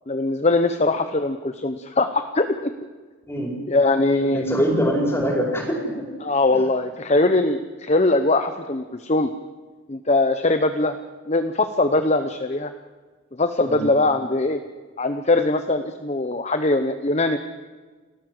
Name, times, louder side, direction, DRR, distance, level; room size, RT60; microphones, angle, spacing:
voice 1, 0.1-2.7 3.7-4.5 6.2-9.3 9.9-11.0 11.3-12.7 13.3-14.6 15.0-17.4, left 2 dB, 35° left, 9 dB, 0.9 m, -21 dB
voice 2, 4.2-6.1 13.7-13.8, equal, 10° left, 1 dB, 5.0 m, -23 dB
29.5 x 14.0 x 7.8 m, 1.4 s
head